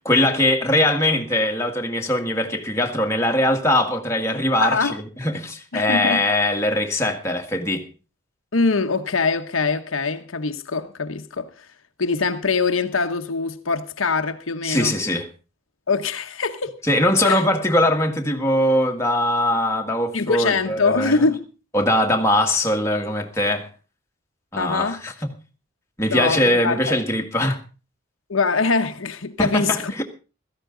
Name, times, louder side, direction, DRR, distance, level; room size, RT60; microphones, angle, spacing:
voice 1, 0.0-4.9 5.2-7.9 14.6-15.3 16.9-21.2 21.7-23.7 24.5-25.3 26.0-27.6 29.4-30.0, left 1 dB, 15° left, 1.8 m, -21 dB
voice 2, 4.6-5.0 5.7-6.2 8.5-11.7 12.0-15.0 15.9-16.8 17.2-17.4 20.1-21.5 24.6-25.0 26.1-27.0 28.3-29.9, left 4 dB, 85° left, 1.1 m, -23 dB
16.5 x 14.0 x 3.9 m
head